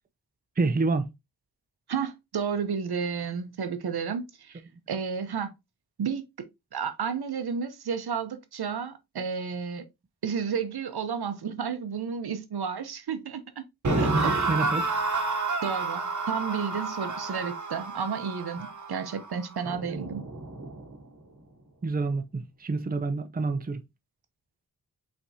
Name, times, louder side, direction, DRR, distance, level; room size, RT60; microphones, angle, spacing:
voice 1, 0.6-1.0 14.1-14.9 19.7-19.8 21.8-23.8, right 3 dB, 25° right, 0.5 m, -28 dB
voice 2, 1.9-4.6 4.9-5.5 6.0-6.2 6.7-9.8 10.2-13.6 14.0-14.8 15.6-20.2, right 6 dB, 80° right, 0.8 m, -32 dB
sound 1, 13.8-21.0, right 3 dB, 50° right, 1.0 m, -30 dB
5.5 x 3.5 x 2.7 m
wide cardioid pair, 100°, 37 cm